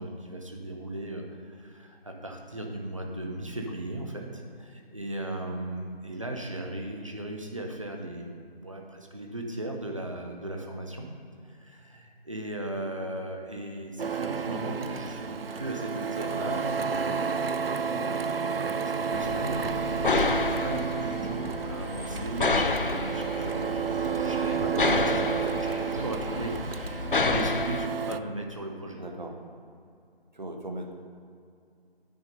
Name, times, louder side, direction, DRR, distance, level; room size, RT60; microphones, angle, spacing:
voice 1, 0.0-11.1 11.4-29.0, right 1 dB, 30° right, 2 dB, 0.9 m, -37 dB
Printer, 14.0-28.2, right 6 dB, 70° right, 0.4 m, -31 dB
sound 1, 19.1-27.9, left 3 dB, 60° left, 0.5 m, -30 dB
voice 2, 29.0-29.4 30.3-30.9, right 1 dB, 45° right, 3 dB, 1.3 m, -38 dB
8.8 x 6.6 x 5.3 m, 2.4 s
figure-of-eight pair, 165°, 31 cm